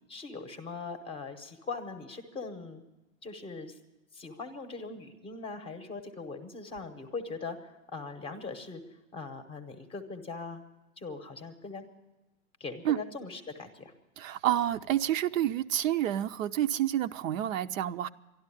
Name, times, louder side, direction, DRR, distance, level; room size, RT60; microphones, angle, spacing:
voice 1, 0.1-2.8 3.2-3.8 4.1-8.8 9.1-10.6 11.0-11.9 12.6-13.9, left 4 dB, 15° left, 8 dB, 0.7 m, -41 dB
voice 2, 14.2-18.1, right 12 dB, 70° right, 11 dB, 0.6 m, -29 dB
12.5 x 12.0 x 9.7 m, 1.1 s
hypercardioid pair, 145°, 41 cm